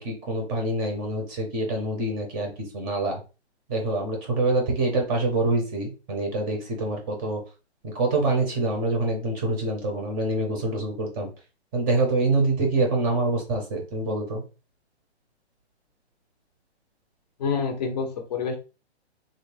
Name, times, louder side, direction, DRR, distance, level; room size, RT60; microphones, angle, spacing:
voice 1, 0.0-3.2 3.7-7.4 7.8-11.3 11.7-14.4, right 2 dB, 20° right, 1 dB, 0.6 m, -26 dB
voice 2, 17.4-18.6, left 5 dB, 40° left, 5 dB, 0.6 m, -27 dB
3.4 x 2.1 x 3.2 m, 0.32 s
hypercardioid pair, 145°, 34 cm